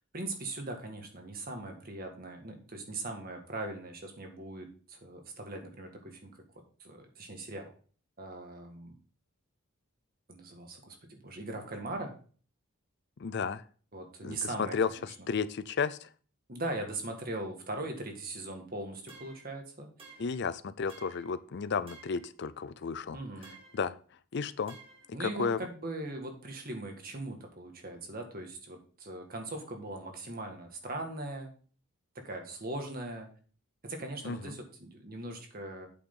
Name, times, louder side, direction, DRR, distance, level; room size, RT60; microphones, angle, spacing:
voice 1, 0.1-6.3 6.8-7.7 8.2-8.9 10.3-12.1 13.9-15.0 16.5-19.9 23.1-23.5 25.1-31.5 32.1-33.3 33.8-35.9, right 2 dB, 40° right, 4 dB, 1.8 m, -40 dB
voice 2, 13.2-13.6 14.2-16.1 20.2-23.2 23.7-23.9 24.3-24.8 25.2-25.6 34.2-34.6, left 5 dB, 50° left, 15 dB, 0.5 m, -33 dB
sound 1, 19.1-19.5 20.0-20.4 20.9-21.3 21.9-22.3 23.4-23.9 24.7-25.1, right 4 dB, 25° right, 1.9 m, -53 dB
8.6 x 6.6 x 3.8 m, 0.41 s
head